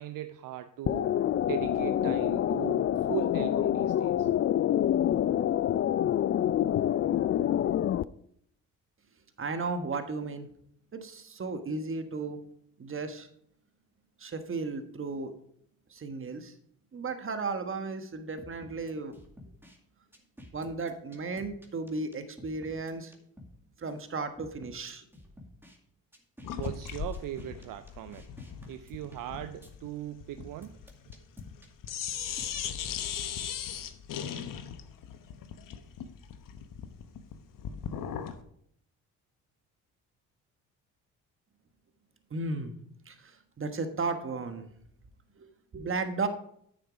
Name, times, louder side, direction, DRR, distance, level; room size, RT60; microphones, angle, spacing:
voice 1, 0.0-4.3 26.5-28.3 28.7-30.8, right 13 dB, 65° right, 0.6 m, -39 dB
sound 1, 0.9-8.0, left 11 dB, 40° left, 0.4 m, -27 dB
voice 2, 9.4-10.5 10.9-12.4 12.8-13.3 14.2-15.3 15.9-16.5 16.9-19.1 20.5-23.1 23.8-25.0 42.3-42.7 43.1-44.6 45.4-45.5 45.7-46.3, right 3 dB, 35° right, 1.3 m, -34 dB
sound 2, 18.4-19.8 20.1-23.6 23.9-24.0 24.4-25.8 26.1-29.7 30.4-32.5, left 1 dB, 5° right, 2.0 m, -51 dB
sound 3, 26.4-31.6 31.8-38.4, left 8 dB, 60° left, 1.0 m, -38 dB
9.6 x 6.6 x 4.8 m
supercardioid pair, 60°, 36 cm